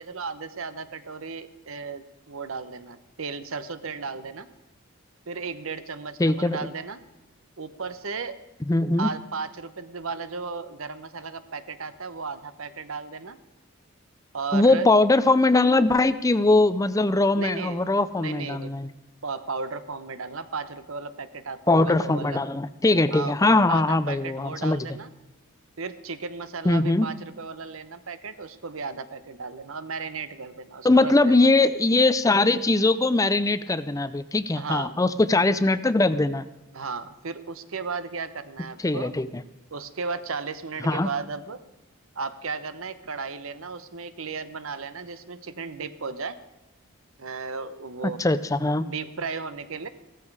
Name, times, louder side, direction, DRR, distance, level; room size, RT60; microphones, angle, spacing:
voice 1, 0.0-4.5 5.3-7.0 7.6-8.3 9.0-13.4 14.3-14.9 17.3-17.9 18.2-18.7 19.2-22.4 23.1-23.3 23.7-25.1 25.8-31.4 34.5-35.0 36.7-39.1 39.7-41.6 42.1-46.4 47.2-48.3 48.8-49.9, right 4 dB, 65° right, 12 dB, 1.0 m, -35 dB
voice 2, 6.2-6.6 8.7-9.1 14.5-18.9 21.7-24.9 26.6-27.1 30.8-36.4 38.8-39.4 40.8-41.1 48.2-48.9, left 2 dB, 15° left, 14 dB, 0.4 m, -21 dB
16.0 x 14.0 x 4.8 m, 1.0 s
head